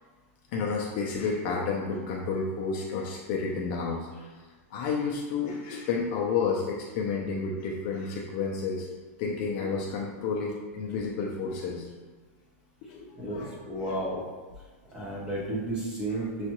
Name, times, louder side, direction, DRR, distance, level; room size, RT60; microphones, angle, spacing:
voice 1, 0.5-4.3 4.7-8.9 9.2-11.9 12.8-13.5 13.9-14.0, left 5 dB, 30° left, -1 dB, 0.4 m, -31 dB
voice 2, 13.1-14.2 14.9-16.5, right 1 dB, 10° right, -5 dB, 0.8 m, -32 dB
6.3 x 2.3 x 3.0 m, 1.4 s
supercardioid pair, 170°, 8 cm